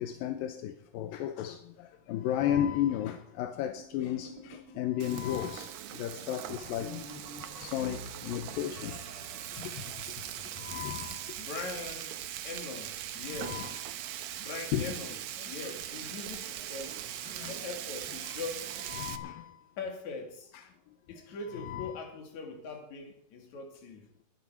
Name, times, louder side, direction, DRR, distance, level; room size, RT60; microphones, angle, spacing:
voice 1, 0.0-7.0 7.6-9.0 9.6-10.1 10.6-11.2 13.4-13.7 14.7-15.0 15.6-15.7 17.3-17.7 18.2-18.4 18.9-19.6 20.5-20.6 21.6-22.0, left 11 dB, 80° left, 2.5 m, -34 dB
sound 1, 3.8-12.0 12.3-12.4 12.6-12.8 13.1-13.6 13.9-14.2 15.0-15.1 15.5-15.6 15.9-16.0 18.3-18.4 20.7-20.8, right 1 dB, 45° right, 4.9 m, -50 dB
Frying (food), 5.0-19.2, right 11 dB, 70° right, 1.8 m, -41 dB
voice 2, 11.4-12.2 12.4-13.7 14.4-15.2 15.5-17.1 17.5-18.7 19.8-20.5 21.1-24.1, left 4 dB, 55° left, 3.4 m, -41 dB
21.5 x 10.5 x 4.6 m
omnidirectional pair, 4.1 m